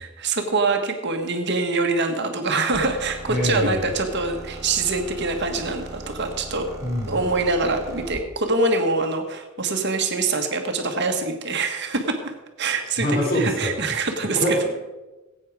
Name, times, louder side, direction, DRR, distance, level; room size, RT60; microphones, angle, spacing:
voice 1, 0.0-6.7 7.1-12.2 12.6-13.1 13.3-14.6, right 3 dB, 55° right, 5 dB, 1.5 m, -24 dB
sound 1, 2.7-8.3, right 1 dB, 15° right, 2.6 m, -38 dB
voice 2, 3.3-3.9 6.8-7.2 13.0-13.9 14.3-14.8, equal, 45° left, -2 dB, 4.5 m, -24 dB
16.0 x 8.8 x 4.8 m, 1.1 s
head